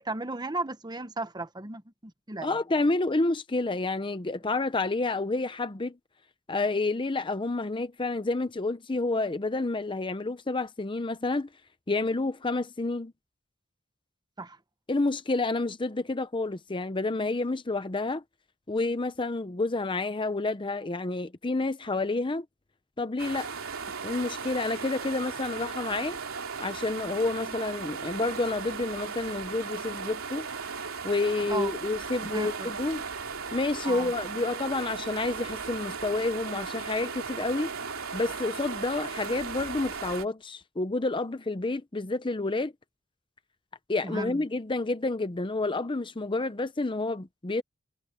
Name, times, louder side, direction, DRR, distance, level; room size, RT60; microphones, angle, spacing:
voice 1, 0.0-2.6 14.4-14.6 31.5-31.7 32.3-32.7 33.8-34.1 44.0-44.4, right 2 dB, 20° right, 1.1 m, -35 dB
voice 2, 2.4-6.0 6.5-11.5 11.9-13.1 14.9-18.2 18.7-22.4 23.0-23.5 24.0-26.2 26.6-30.5 31.0-33.0 33.5-37.7 38.1-42.7 43.9-47.6, left 2 dB, 25° left, 0.7 m, -29 dB
sound 1, 23.2-40.3, right 5 dB, 90° right, 3.0 m, -37 dB
head